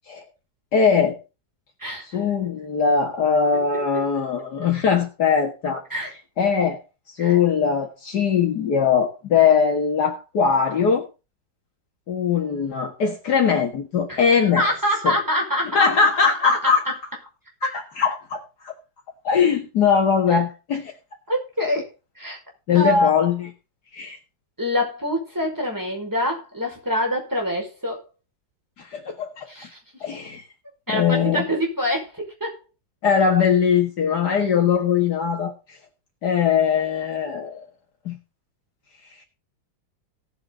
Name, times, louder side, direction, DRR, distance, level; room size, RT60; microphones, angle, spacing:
voice 1, 0.7-1.2 2.1-5.8 6.4-6.8 7.1-11.1 12.1-14.7 15.0-15.2 15.7-16.8 17.6-18.7 19.2-20.9 22.7-23.5 23.9-24.2 28.8-29.5 30.0-30.4 30.9-31.4 33.0-35.8 36.2-37.7 38.1-38.2, left 6 dB, 60° left, 2.3 m, -21 dB
voice 2, 14.1-15.9 16.4-16.9 17.6-17.7 21.3-21.9 22.2-22.4 22.7-23.1 24.6-28.0 29.5-29.8 30.9-32.6, left 1 dB, 10° right, 5.4 m, -25 dB
18.0 x 7.8 x 3.9 m
omnidirectional pair, 2.1 m